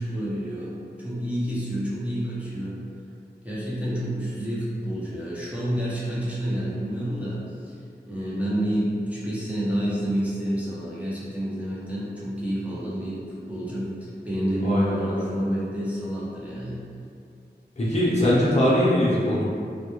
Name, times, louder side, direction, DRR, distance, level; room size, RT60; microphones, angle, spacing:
voice 1, 0.0-2.8 3.4-7.7 8.1-13.2 13.5-16.8, equal, 5° right, -8 dB, 0.5 m, -29 dB
voice 2, 17.8-19.4, left 1 dB, 40° left, -8 dB, 0.6 m, -21 dB
2.1 x 2.1 x 2.9 m, 2.4 s
wide cardioid pair, 65°, 18 cm